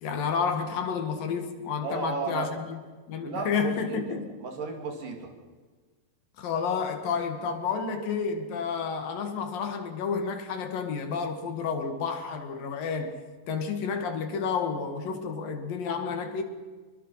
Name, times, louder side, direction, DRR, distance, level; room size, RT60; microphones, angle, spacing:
voice 1, 0.0-2.8 3.1-4.2 6.4-13.2 13.5-16.4, left 6 dB, 80° left, 3.7 m, -30 dB
voice 2, 1.8-2.5 3.2-5.3, right 3 dB, 70° right, 4.5 m, -34 dB
25.0 x 22.5 x 5.8 m
omnidirectional pair, 4.0 m